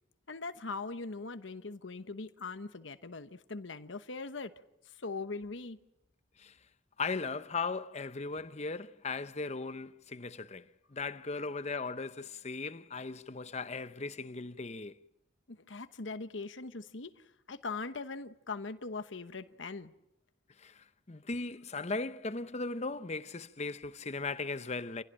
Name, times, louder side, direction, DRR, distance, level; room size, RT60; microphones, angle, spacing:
voice 1, 0.3-4.5 5.0-5.8 15.5-17.1 17.5-19.9, left 3 dB, 80° left, 1.1 m, -41 dB
voice 2, 7.0-15.0 20.6-25.0, left 3 dB, 35° left, 0.8 m, -38 dB
28.0 x 16.5 x 8.9 m
head